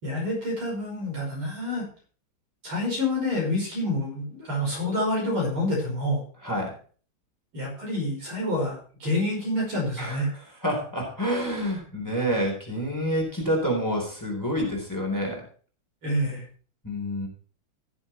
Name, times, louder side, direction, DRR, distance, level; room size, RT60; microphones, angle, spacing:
voice 1, 0.0-1.8 2.6-6.2 7.5-10.3 16.0-16.4, left 1 dB, 85° right, -2 dB, 6.2 m, -27 dB
voice 2, 6.4-6.7 10.0-10.2 10.6-15.4 16.8-17.3, equal, 10° left, -1 dB, 3.9 m, -28 dB
15.5 x 7.3 x 4.4 m, 0.40 s
omnidirectional pair, 2.2 m